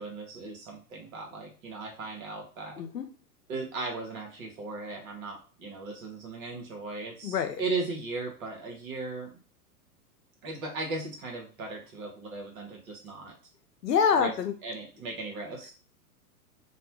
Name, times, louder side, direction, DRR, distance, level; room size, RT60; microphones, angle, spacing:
voice 1, 0.0-2.8 3.5-9.4 10.4-13.3 14.2-14.3 14.6-15.7, right 3 dB, 55° right, 1 dB, 1.3 m, -37 dB
voice 2, 2.8-3.1 7.2-7.6 13.8-14.5, left 6 dB, 85° left, 7 dB, 0.7 m, -26 dB
3.0 x 2.1 x 3.0 m, 0.36 s
figure-of-eight pair, 100°, 47 cm